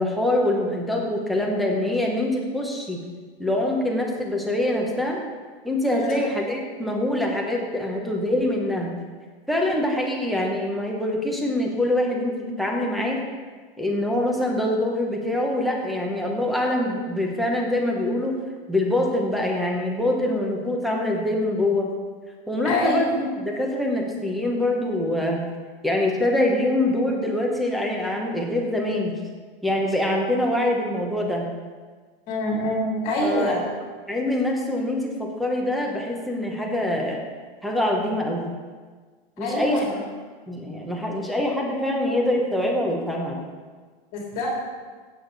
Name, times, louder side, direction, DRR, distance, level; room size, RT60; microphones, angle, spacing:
voice 1, 0.0-3.0 3.4-5.2 5.6-8.9 9.5-13.2 13.8-18.3 18.7-21.9 22.5-25.4 25.8-29.1 29.6-31.5 33.2-33.6 34.1-37.2 37.6-38.4 39.4-39.8 40.5-43.4, left 1 dB, ahead, 0 dB, 0.8 m, -24 dB
voice 2, 22.6-23.1 32.3-33.6 39.4-39.9 44.1-44.5, left 1 dB, 30° left, -3 dB, 2.8 m, -25 dB
15.0 x 8.2 x 4.0 m, 1.5 s
supercardioid pair, 170°, 29 cm